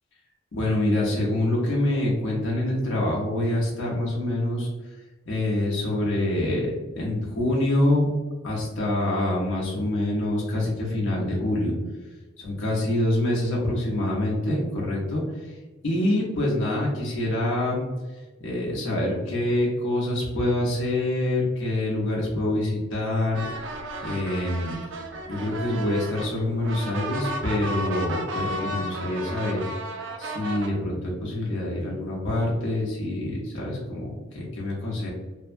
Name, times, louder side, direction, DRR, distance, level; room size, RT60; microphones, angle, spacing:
voice 1, 0.5-4.7 5.3-8.1 8.4-11.7 12.4-15.2 15.8-17.9 18.4-23.4 24.0-24.8 25.3-29.6 30.2-35.1, left 1 dB, 75° left, -4 dB, 0.8 m, -26 dB
sound 1, 23.3-30.7, right 1 dB, 65° right, 0.4 m, -34 dB
2.7 x 2.2 x 2.5 m, 1.2 s
head